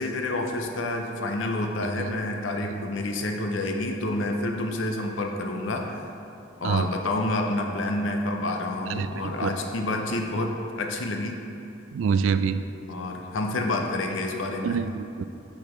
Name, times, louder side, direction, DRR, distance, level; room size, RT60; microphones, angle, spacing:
voice 1, 0.0-6.0 6.6-11.4 12.9-14.8, left 2 dB, 85° left, 3 dB, 0.7 m, -28 dB
voice 2, 11.9-12.6 14.6-15.2, right 6 dB, 85° right, 11 dB, 0.3 m, -25 dB
8.4 x 4.8 x 3.2 m, 2.7 s
head